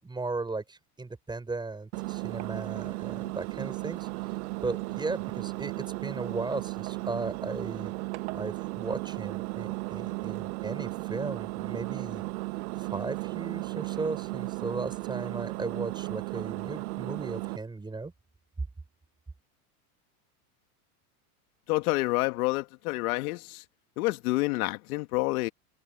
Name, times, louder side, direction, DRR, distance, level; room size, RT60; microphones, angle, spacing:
voice 1, 0.0-4.1 4.6-7.9 8.3-12.2 12.8-18.1, right 3 dB, 10° right, 6.0 m, -36 dB
Engine, 1.9-17.6, right 24 dB, 70° right, 1.0 m, -35 dB
voice 2, 21.7-23.6 24.0-25.5, left 21 dB, 70° left, 1.8 m, -28 dB
supercardioid pair, 145°, 45 cm